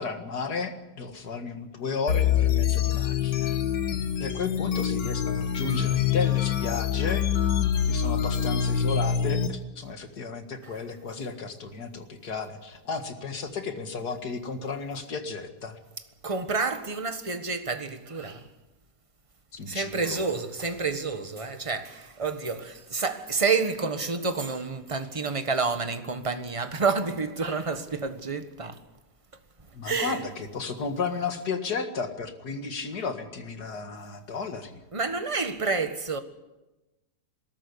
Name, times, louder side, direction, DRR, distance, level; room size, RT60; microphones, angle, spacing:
voice 1, 0.0-3.6 4.2-7.2 7.8-15.8 19.5-20.3 29.7-34.8, left 4 dB, 70° left, 2.4 m, -33 dB
sound 1, 2.1-9.5, left 8 dB, 90° left, 1.9 m, -25 dB
voice 2, 16.2-18.5 19.7-28.8 29.8-30.2 34.9-36.2, right 4 dB, 20° right, 1.4 m, -29 dB
21.0 x 13.5 x 9.8 m
omnidirectional pair, 1.8 m